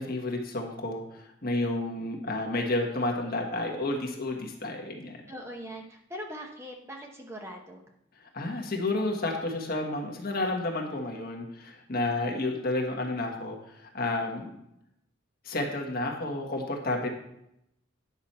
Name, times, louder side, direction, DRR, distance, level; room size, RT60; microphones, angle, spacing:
voice 1, 0.0-5.2 8.3-14.5 15.4-17.1, left 2 dB, 50° left, 2 dB, 1.5 m, -31 dB
voice 2, 5.3-7.8, equal, 15° right, 1 dB, 1.0 m, -41 dB
9.7 x 6.0 x 4.3 m, 0.79 s
head